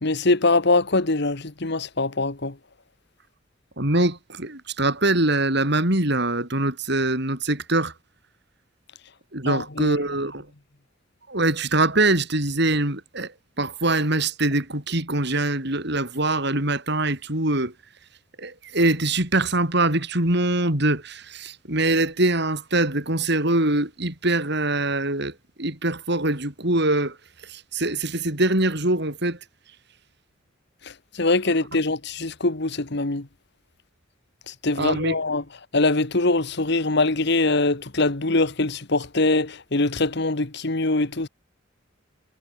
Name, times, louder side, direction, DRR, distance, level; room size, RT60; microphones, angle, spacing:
voice 1, 0.0-2.5 9.5-10.0 31.2-33.3 34.6-35.4 35.7-41.3, left 2 dB, 55° left, 1.6 m, -23 dB
voice 2, 3.8-7.9 9.3-10.5 11.3-17.7 18.4-27.2 27.4-29.4 34.8-35.2, right 2 dB, 55° right, 5.4 m, -23 dB
head